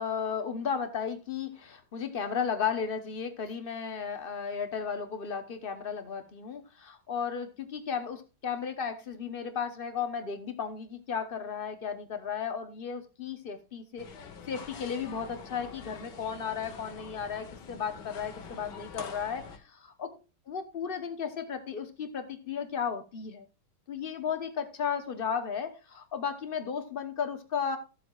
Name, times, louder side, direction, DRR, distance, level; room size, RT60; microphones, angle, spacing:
voice 1, 0.0-14.1 14.5-20.2 20.5-23.4 23.9-27.8, left 6 dB, 45° left, 8 dB, 0.7 m, -34 dB
sound 1, 14.0-19.6, left 6 dB, 60° left, 1.7 m, -46 dB
14.5 x 7.6 x 2.4 m, 0.31 s
omnidirectional pair, 2.2 m